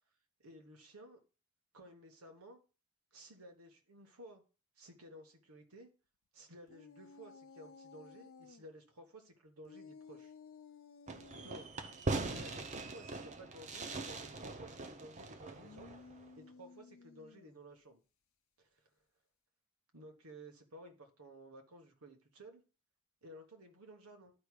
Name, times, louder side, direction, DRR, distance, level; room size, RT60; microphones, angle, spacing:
voice 1, 0.4-1.2 1.7-2.6 3.1-4.4 4.8-5.9 6.3-10.3 11.4-11.6 12.2-15.9 16.4-18.0 18.6-18.9 19.9-22.6 23.2-24.3, right 1 dB, 85° right, 5 dB, 1.4 m, -55 dB
sound 1, 6.7-8.6 9.6-11.6 15.4-17.6, left 5 dB, 65° left, 0.6 m, -56 dB
Fireworks, 11.1-16.3, right 3 dB, 35° right, 0.6 m, -41 dB
12.0 x 4.8 x 2.4 m, 0.35 s
head